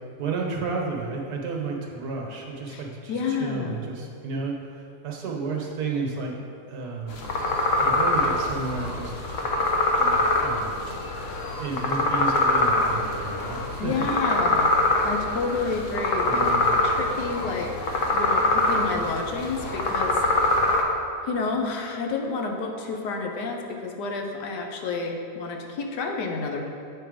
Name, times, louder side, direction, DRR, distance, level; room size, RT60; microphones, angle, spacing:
voice 1, 0.2-4.5 5.0-6.4 6.7-7.2 7.8-9.1 9.9-10.8 11.2-11.3 11.6-14.1 16.2-16.6, right 4 dB, 65° right, 0 dB, 1.5 m, -32 dB
voice 2, 2.7-3.8 13.8-14.8 15.0-17.8 18.1-20.7 21.2-26.6, left 4 dB, 80° left, 2 dB, 1.4 m, -30 dB
sound 1, 7.1-20.8, left 2 dB, 55° left, 1.1 m, -24 dB
8.6 x 4.4 x 5.0 m, 2.5 s
omnidirectional pair, 1.8 m